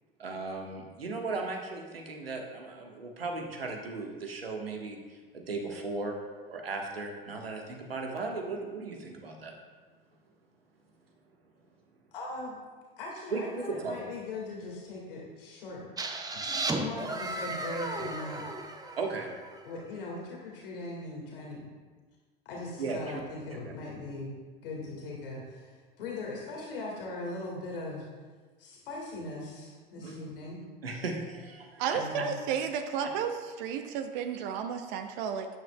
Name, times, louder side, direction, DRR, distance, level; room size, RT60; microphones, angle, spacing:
voice 1, 0.2-6.2 6.4-9.5 13.3-14.0 19.0-19.3 22.8-23.2 23.6-23.7 29.9-30.3 30.8-32.0, right 3 dB, 80° right, 1 dB, 1.4 m, -36 dB
voice 2, 12.1-12.6 13.0-15.9 16.3-18.5 19.6-21.6 22.5-28.1 28.6-30.6 31.9-32.4, left 2 dB, 70° left, -2 dB, 2.0 m, -40 dB
sound 1, 16.0-19.7, right 3 dB, 15° right, 0.8 m, -35 dB
voice 3, 31.8-33.3 33.6-35.6, right 7 dB, 55° right, 7 dB, 0.9 m, -32 dB
13.0 x 9.6 x 2.3 m, 1.4 s
figure-of-eight pair, 80°, 29 cm